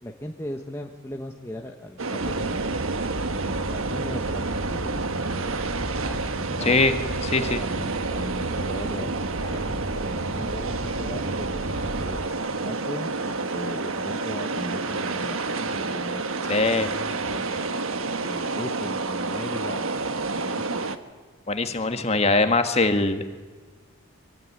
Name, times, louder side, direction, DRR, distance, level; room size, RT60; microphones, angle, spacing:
voice 1, 0.0-2.7 3.2-6.8 7.6-9.1 9.4-13.1 13.5-16.6 16.9-17.7 18.3-20.9, left 1 dB, 10° left, 2 dB, 1.2 m, -39 dB
sound 1, 2.0-21.0, right 3 dB, 65° right, 1.4 m, -29 dB
sound 2, 2.2-12.3, right 1 dB, 40° right, 1.1 m, -34 dB
voice 2, 6.6-6.9 7.2-7.6 16.5-16.9 21.5-23.3, left 3 dB, 30° left, 8 dB, 1.7 m, -22 dB
24.0 x 24.0 x 9.8 m, 1.4 s
head